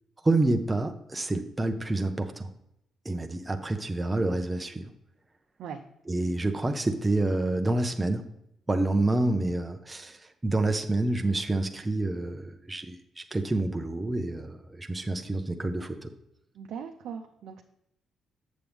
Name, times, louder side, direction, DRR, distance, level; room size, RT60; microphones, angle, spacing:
voice 1, 0.2-2.5 3.0-4.9 6.0-8.2 8.7-10.2 10.4-13.0 13.3-16.1, right 2 dB, 15° right, 5 dB, 0.7 m, -28 dB
voice 2, 16.5-17.6, right 7 dB, 75° right, 3 dB, 0.6 m, -39 dB
7.7 x 7.1 x 3.5 m, 0.79 s
cardioid pair, 90°, 0 cm